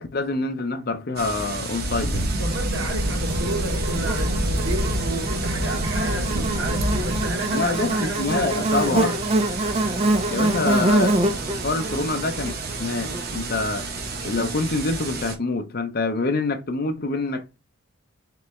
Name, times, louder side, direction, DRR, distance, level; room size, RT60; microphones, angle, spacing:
voice 1, 0.0-2.3 7.5-9.1 10.3-12.5 12.8-13.9 14.2-17.6, left 3 dB, 45° left, 0.5 m, -26 dB
sound 1, 1.2-15.4, right 3 dB, 45° right, 0.9 m, -32 dB
sound 2, 1.8-7.3, equal, 80° right, 0.8 m, -26 dB
voice 2, 2.4-9.2, right 1 dB, 60° right, 1.2 m, -32 dB
Buzz, 3.3-13.8, right 2 dB, 30° right, 0.4 m, -26 dB
3.8 x 3.3 x 3.1 m
head